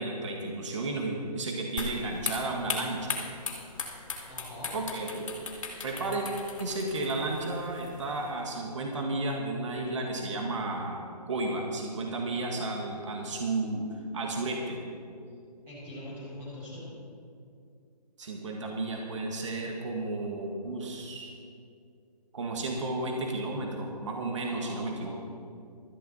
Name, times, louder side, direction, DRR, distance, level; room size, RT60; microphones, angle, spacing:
voice 1, 0.0-3.3 4.7-5.2 5.8-6.3 6.6-13.9 14.1-14.8 18.2-21.3 22.3-25.1, right 2 dB, 45° right, 0 dB, 1.8 m, -33 dB
sound 1, 1.8-8.3, left 4 dB, 50° left, 2.6 m, -38 dB
voice 2, 4.3-4.7 15.7-16.9 24.3-25.1, left 1 dB, 10° right, -10 dB, 4.1 m, -43 dB
16.5 x 13.5 x 4.2 m, 2.4 s
hypercardioid pair, 170°, 21 cm